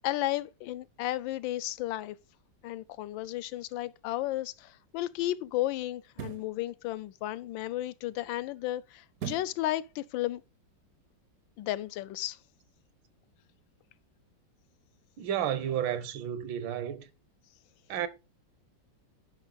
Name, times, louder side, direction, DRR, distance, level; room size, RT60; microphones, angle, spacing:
voice 1, 0.0-2.2 2.6-10.4 11.6-12.4, left 15 dB, 85° left, 1.3 m, -33 dB
sound 1, 4.2-4.4 6.1-6.5 9.2-9.6 10.1-10.2, right 9 dB, 70° right, 0.9 m, -39 dB
voice 2, 15.2-17.1 17.9-18.1, right 10 dB, 85° right, 1.6 m, -32 dB
9.8 x 5.2 x 3.8 m
omnidirectional pair, 2.0 m